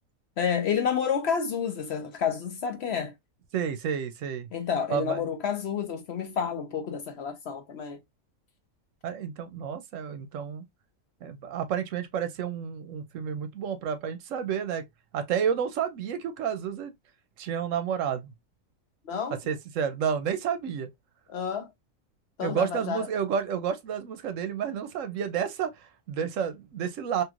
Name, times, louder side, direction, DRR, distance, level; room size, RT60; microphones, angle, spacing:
voice 1, 0.4-3.1 4.5-8.0 19.0-19.4 21.3-21.7 22.4-23.1, left 7 dB, 60° left, 0.8 m, -29 dB
voice 2, 3.5-4.5 4.9-5.2 9.0-10.6 11.2-14.8 15.1-16.9 17.4-18.3 19.5-20.9 22.4-27.2, right 8 dB, 75° right, 0.9 m, -30 dB
3.0 x 3.0 x 2.3 m
omnidirectional pair, 1.4 m